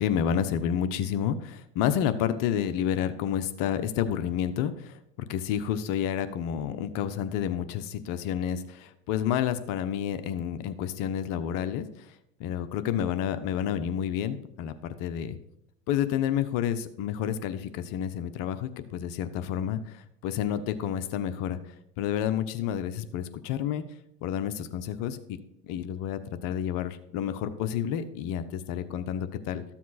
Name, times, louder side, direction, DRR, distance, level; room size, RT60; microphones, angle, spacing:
voice 1, 0.0-15.4 15.9-21.6 22.0-23.8 24.2-25.4 25.6-29.7, left 9 dB, 65° left, 11 dB, 1.1 m, -30 dB
13.5 x 7.4 x 4.2 m, 0.80 s
supercardioid pair, 95°, 35 cm